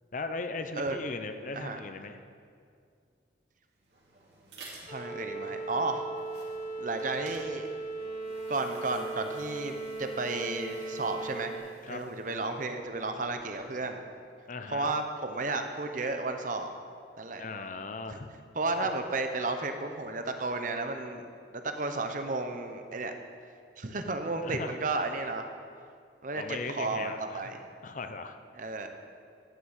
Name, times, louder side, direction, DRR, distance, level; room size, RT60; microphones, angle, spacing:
voice 1, 0.1-2.2 11.8-12.0 14.5-14.9 17.4-18.3 18.8-18.9 24.4-24.7 26.3-27.5 27.8-28.4, left 3 dB, 45° left, 8 dB, 0.6 m, -38 dB
sound 1, 3.7-13.6, right 2 dB, 60° right, 2.9 m, -54 dB
voice 2, 4.8-6.1 6.8-7.7 8.5-11.5 11.9-14.0 14.7-16.7 17.2-17.4 18.1-18.2 18.5-21.2 21.5-23.1 23.8-25.5 26.2-27.6 28.5-28.9, right 3 dB, 45° right, 6 dB, 0.9 m, -33 dB
sound 2, 4.9-11.6, right 3 dB, 25° left, 2.6 m, -38 dB
12.5 x 6.2 x 8.1 m, 2.2 s
head